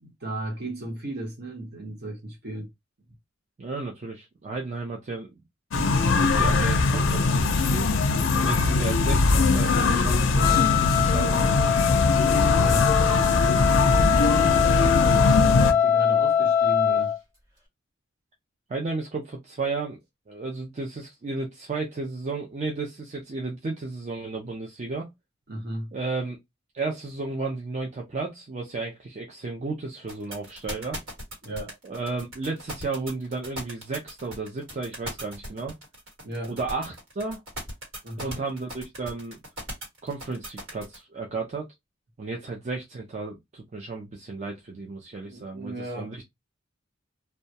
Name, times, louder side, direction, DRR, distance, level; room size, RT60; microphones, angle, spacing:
voice 1, 0.0-2.7 12.6-12.9 13.4-13.8 14.8-17.1 25.5-25.9 31.4-31.8 36.2-36.5 38.0-38.4 45.3-46.2, right 1 dB, 55° right, 0.9 m, -35 dB
voice 2, 3.6-5.4 5.8-7.9 8.3-11.4 15.0-15.5 18.7-20.0 20.3-25.1 25.9-26.4 26.7-31.0 31.8-35.7 36.5-37.4 38.2-39.4 40.0-41.7 42.2-46.2, right 3 dB, 35° right, 0.4 m, -33 dB
sound 1, 5.7-15.7, left 3 dB, 70° left, 0.4 m, -21 dB
Wind instrument woodwind instrument, 10.4-17.2, left 8 dB, 15° right, 1.0 m, -23 dB
sound 2, 30.1-41.0, equal, 80° right, 1.3 m, -38 dB
2.2 x 2.1 x 2.7 m
head